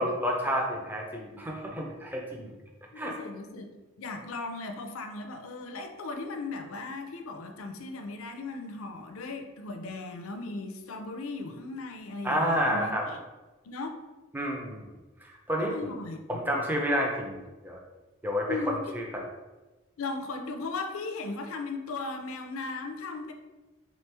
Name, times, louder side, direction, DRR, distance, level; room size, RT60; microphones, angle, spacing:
voice 1, 0.0-2.5 3.0-3.1 12.2-13.0 14.3-14.9 15.2-16.0 16.3-17.8 18.2-19.2, equal, 10° right, 0 dB, 0.5 m, -30 dB
voice 2, 2.9-3.7 4.0-13.2 13.6-14.0 15.6-16.2 18.4-18.8 20.0-23.3, left 3 dB, 85° left, 6 dB, 0.5 m, -37 dB
3.6 x 3.1 x 3.3 m, 1.2 s
head